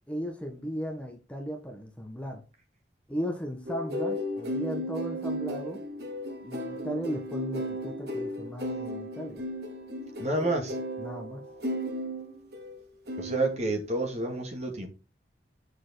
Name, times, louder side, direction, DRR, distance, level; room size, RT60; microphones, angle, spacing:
voice 1, 0.1-2.4 3.1-5.8 6.4-9.4 11.0-11.4, equal, 5° left, 1.3 m, -36 dB
sound 1, 3.7-12.7 13.1-13.6, equal, 65° right, 2.4 m, -35 dB
voice 2, 10.2-10.8 13.2-14.9, right 2 dB, 40° right, 2.2 m, -29 dB
7.6 x 6.6 x 4.0 m
head